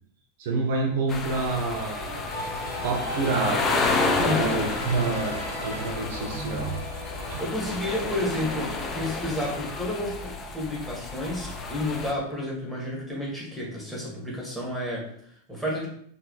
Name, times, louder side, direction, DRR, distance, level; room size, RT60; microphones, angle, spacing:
voice 1, 0.4-2.3 2.8-6.8 7.3-7.4, right 3 dB, 50° right, 2 dB, 0.7 m, -28 dB
sound 1, 1.1-12.1, left 3 dB, 25° left, 0.6 m, -30 dB
sound 2, 2.3-7.5, equal, 85° left, 1.0 m, -36 dB
voice 2, 7.2-15.9, left 1 dB, 5° left, -4 dB, 2.0 m, -31 dB
4.6 x 2.9 x 3.9 m, 0.64 s
figure-of-eight pair, 90°, 0 cm